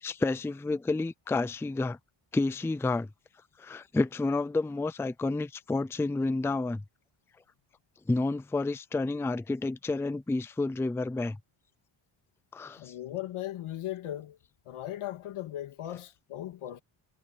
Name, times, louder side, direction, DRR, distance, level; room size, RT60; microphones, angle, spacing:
voice 1, 0.0-2.0 2.3-3.1 3.6-6.8 8.1-11.4 12.5-12.9, left 3 dB, 5° left, 0.4 m, -30 dB
voice 2, 12.7-14.4 14.7-16.8, left 13 dB, 90° left, 2.4 m, -38 dB
wide cardioid pair, 150°, 48 cm